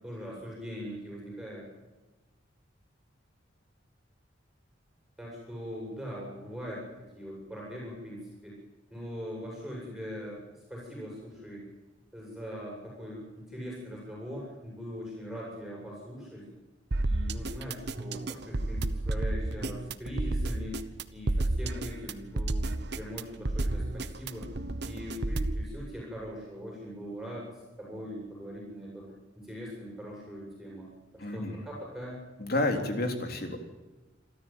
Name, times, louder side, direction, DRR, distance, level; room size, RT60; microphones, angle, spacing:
voice 1, 0.0-1.7 5.2-6.9 7.1-8.5 8.9-10.4 10.7-11.6 12.1-16.5 17.0-24.5 24.8-27.5 27.8-30.9 31.1-32.3, equal, ahead, -4 dB, 7.8 m, -41 dB
sound 1, 16.9-25.6, right 2 dB, 60° right, 1.0 m, -31 dB
voice 2, 31.2-31.5 32.4-33.7, left 2 dB, 50° left, 4 dB, 3.5 m, -30 dB
27.0 x 13.5 x 9.3 m, 1.2 s
head